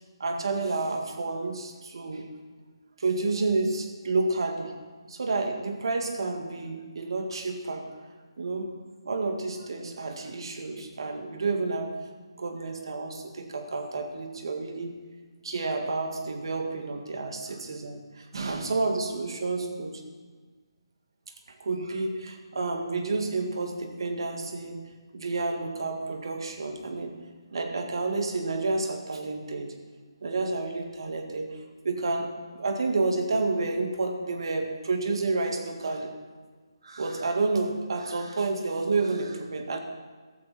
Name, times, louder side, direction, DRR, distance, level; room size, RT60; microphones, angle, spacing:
voice 1, 0.2-2.3 3.0-4.7 5.1-7.9 8.4-8.7 9.1-12.0 12.4-14.9 15.4-20.0 21.5-27.2 27.5-29.7 30.2-31.6 31.8-36.1 36.8-39.8, right 3 dB, 65° right, 5 dB, 2.1 m, -30 dB
15.0 x 14.0 x 4.4 m, 1.4 s
hypercardioid pair, 160°, 3 cm